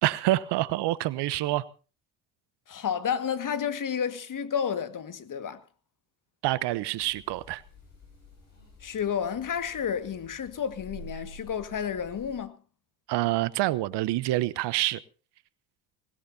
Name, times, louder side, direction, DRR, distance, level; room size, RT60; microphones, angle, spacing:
voice 1, 0.0-1.6 6.4-7.6 13.1-15.0, right 16 dB, 60° right, 1.0 m, -27 dB
voice 2, 2.7-5.6 8.8-12.6, left 7 dB, 40° left, 1.9 m, -31 dB
sound 1, 7.0-12.4, left 1 dB, 90° left, 6.9 m, -49 dB
20.0 x 19.0 x 2.8 m
hypercardioid pair, 55°, 46 cm